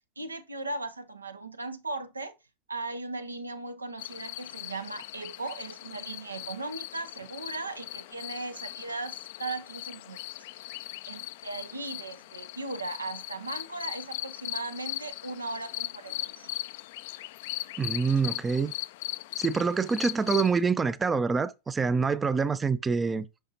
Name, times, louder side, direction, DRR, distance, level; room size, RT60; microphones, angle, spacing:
voice 1, 0.2-2.3 2.7-10.2 11.1-16.5, right 2 dB, 80° right, 0.7 m, -37 dB
sound 1, 4.0-20.6, left 17 dB, 50° left, 0.4 m, -39 dB
voice 2, 17.8-18.7 19.4-23.2, right 5 dB, 15° right, 0.4 m, -26 dB
7.9 x 5.6 x 2.8 m
figure-of-eight pair, 90°, 0 cm